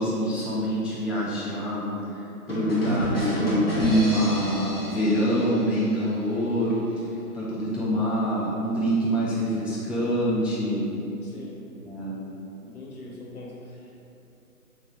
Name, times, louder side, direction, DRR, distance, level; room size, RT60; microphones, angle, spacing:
voice 1, 0.0-7.0 7.3-10.8 11.9-12.2, equal, 5° right, -8 dB, 0.3 m, -25 dB
sound 1, 2.5-6.2, equal, 40° left, 0.6 m, -29 dB
voice 2, 11.2-11.6 12.6-13.9, left 2 dB, 70° left, -3 dB, 0.8 m, -42 dB
3.0 x 2.3 x 2.9 m, 2.7 s
hypercardioid pair, 180°, 45 cm